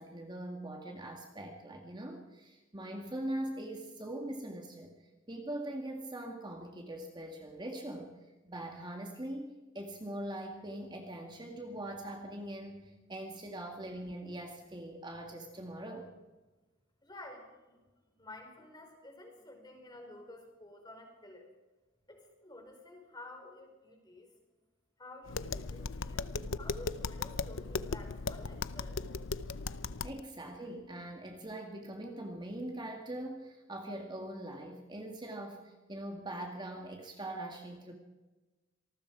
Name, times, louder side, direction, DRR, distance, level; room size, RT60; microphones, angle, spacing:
voice 1, 0.0-5.0 5.3-8.2 8.5-16.1 30.0-37.9, right 1 dB, 20° right, 2 dB, 2.1 m, -42 dB
voice 2, 17.0-17.8 18.2-21.5 22.1-24.3 25.0-29.0, left 2 dB, 20° left, 3 dB, 4.9 m, -51 dB
Tap, 25.3-30.2, left 4 dB, 80° left, 0.7 m, -37 dB
26.5 x 20.0 x 4.9 m, 1.2 s
head